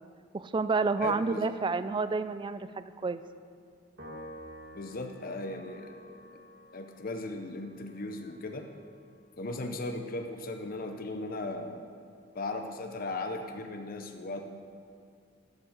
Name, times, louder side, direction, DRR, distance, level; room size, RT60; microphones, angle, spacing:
voice 1, 0.3-3.2, right 4 dB, 25° right, 13 dB, 0.3 m, -29 dB
voice 2, 1.0-1.5 4.7-6.2 6.7-8.7 9.4-11.8 12.3-14.4, left 2 dB, 45° left, 4 dB, 0.7 m, -37 dB
Piano, 4.0-10.6, equal, 60° right, 1.9 m, -51 dB
11.5 x 6.0 x 6.5 m, 2.4 s
head